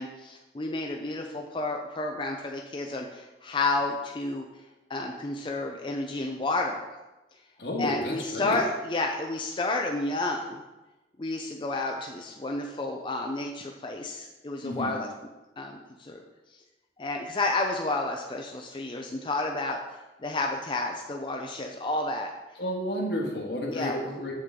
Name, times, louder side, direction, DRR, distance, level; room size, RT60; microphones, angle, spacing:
voice 1, 0.0-4.4 4.9-6.9 7.8-10.6 11.2-15.1 15.6-15.7 16.0-16.2 17.0-19.8 20.2-22.3 23.7-24.3, left 2 dB, 30° left, 2 dB, 0.5 m, -31 dB
voice 2, 7.6-8.6 14.6-15.0 22.6-24.3, left 1 dB, 75° left, 0 dB, 1.6 m, -31 dB
7.6 x 6.5 x 3.7 m, 1.1 s
head